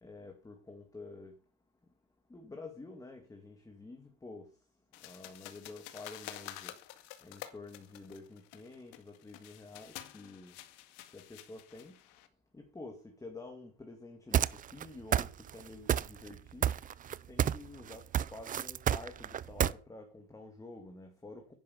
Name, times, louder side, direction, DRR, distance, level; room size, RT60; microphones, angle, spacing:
voice 1, 0.0-1.3 2.3-4.5 5.0-6.7 7.2-10.5 11.1-12.0 12.5-16.7 17.3-18.0 18.3-21.5, left 3 dB, 10° left, 4 dB, 2.2 m, -49 dB
sound 1, 4.9-12.3, left 14 dB, 85° left, 2.0 m, -50 dB
sound 2, 14.3-14.8 15.1-15.6 15.9-16.4 16.6-17.7 17.9-19.7, right 10 dB, 25° right, 0.5 m, -29 dB
11.0 x 10.5 x 7.1 m, 0.39 s
cardioid pair, 145°, 31 cm